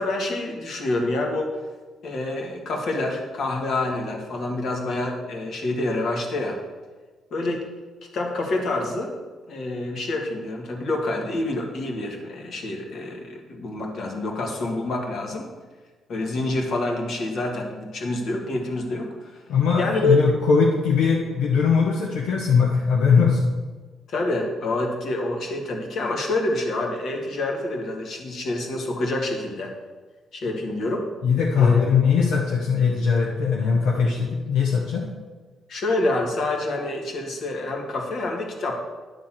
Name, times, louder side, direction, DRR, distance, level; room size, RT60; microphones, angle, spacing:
voice 1, 0.0-1.5 2.0-6.6 7.3-7.7 8.1-9.1 9.5-15.5 16.1-19.4 19.8-20.2 24.1-29.7 30.3-31.1 31.6-31.9 35.7-38.8, left 2 dB, 65° left, 1 dB, 1.8 m, -27 dB
voice 2, 19.5-23.4 31.2-35.1, left 6 dB, 90° left, -1 dB, 1.1 m, -20 dB
10.5 x 3.9 x 7.4 m, 1.3 s
cardioid pair, 90°, 0 cm